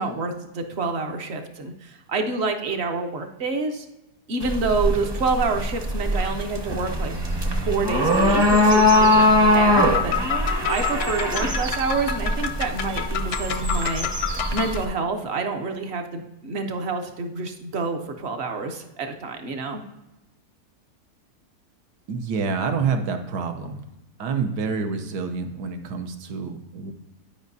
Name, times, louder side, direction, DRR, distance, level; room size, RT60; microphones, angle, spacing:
voice 1, 0.0-3.9 4.3-7.1 7.6-14.1 14.5-19.8, right 4 dB, 50° right, 5 dB, 0.8 m, -28 dB
sound 1, 4.4-14.8, left 1 dB, 25° right, 0.6 m, -21 dB
sound 2, 9.8-14.8, left 8 dB, 65° left, 0.7 m, -29 dB
voice 2, 22.1-23.8 24.2-26.9, right 5 dB, 85° right, 6 dB, 1.4 m, -27 dB
10.5 x 5.2 x 2.7 m, 0.98 s
omnidirectional pair, 1.7 m